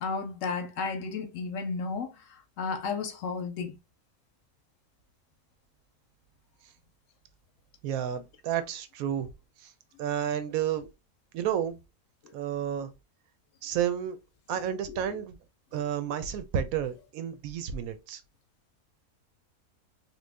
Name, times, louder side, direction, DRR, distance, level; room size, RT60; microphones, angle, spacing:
voice 1, 0.0-3.8 14.9-15.2 15.7-15.8, left 5 dB, 70° left, 0.9 m, -33 dB
voice 2, 7.8-9.3 10.0-10.9 11.3-11.8 12.3-12.9 13.6-14.2 14.5-15.4 15.7-18.2, right 9 dB, 75° right, 1.0 m, -31 dB
3.0 x 2.4 x 3.2 m
omnidirectional pair, 1.5 m